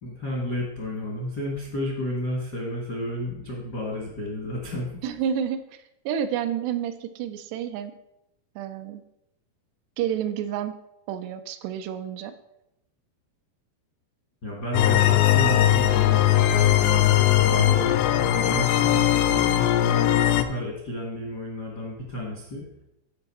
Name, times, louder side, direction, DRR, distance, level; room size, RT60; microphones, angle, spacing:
voice 1, 0.0-5.0 14.4-17.8 18.3-22.6, left 1 dB, 60° left, -3 dB, 1.0 m, -32 dB
voice 2, 5.0-5.6 6.1-7.9 8.6-9.0 10.0-10.7 11.1-12.3, right 9 dB, 80° right, 9 dB, 2.6 m, -29 dB
sound 1, 14.7-20.4, left 12 dB, 85° left, 2.7 m, -20 dB
13.5 x 5.2 x 4.2 m, 0.85 s
omnidirectional pair, 4.9 m